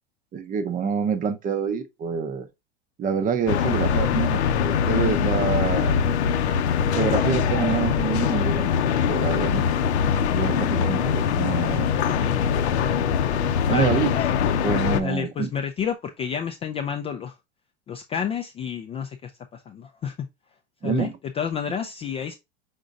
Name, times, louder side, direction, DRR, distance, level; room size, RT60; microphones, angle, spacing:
voice 1, 0.3-2.5 3.0-6.0 6.9-9.7 10.3-12.2 13.7-14.1 14.6-15.5 20.8-21.1, right 7 dB, 25° right, 0.6 m, -27 dB
sound 1, 3.5-15.0, left 7 dB, 85° left, 0.7 m, -22 dB
voice 2, 13.7-14.2 15.0-17.4 17.9-20.3 20.8-22.3, left 7 dB, 20° left, 0.3 m, -30 dB
5.3 x 3.7 x 2.5 m
supercardioid pair, 120°, 32 cm